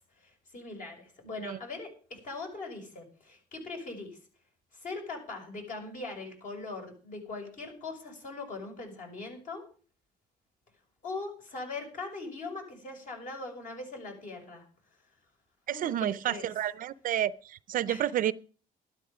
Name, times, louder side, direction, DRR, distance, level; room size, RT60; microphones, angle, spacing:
voice 1, 0.2-4.2 4.7-9.6 11.0-14.6 15.7-16.5 17.9-18.2, left 3 dB, 50° left, 6.0 m, -41 dB
voice 2, 15.7-18.3, right 11 dB, 55° right, 0.5 m, -30 dB
12.5 x 12.5 x 5.1 m
cardioid pair, 110°, 17 cm